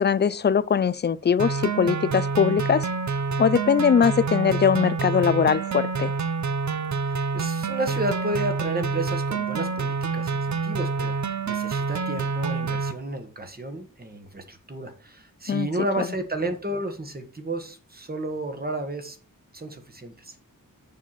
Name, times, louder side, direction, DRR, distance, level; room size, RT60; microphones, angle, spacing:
voice 1, 0.0-2.9 3.4-6.1 15.5-15.7 16.0-16.1, left 7 dB, 35° left, 0.4 m, -21 dB
sound 1, 1.4-12.9, right 4 dB, 55° right, 0.8 m, -27 dB
voice 2, 7.0-19.2 19.5-20.3, right 1 dB, 25° right, 1.4 m, -32 dB
7.1 x 6.4 x 4.1 m
wide cardioid pair, 135°, 33 cm